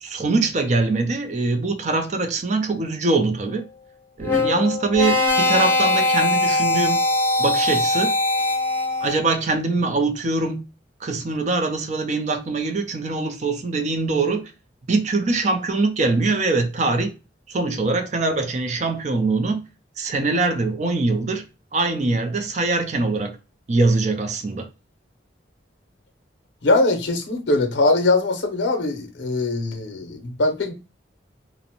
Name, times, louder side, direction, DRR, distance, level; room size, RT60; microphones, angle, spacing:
voice 1, 0.0-3.6 4.2-7.0 7.4-8.1 9.0-10.6 11.0-14.5 14.9-17.1 17.5-19.6 20.0-21.4 21.7-23.4 23.7-24.7, right 3 dB, 40° right, 0.4 m, -23 dB
sound 1, 4.2-9.3, left 2 dB, 10° left, 0.6 m, -21 dB
voice 2, 26.6-30.7, left 2 dB, 75° left, 0.6 m, -21 dB
2.5 x 2.0 x 2.7 m
head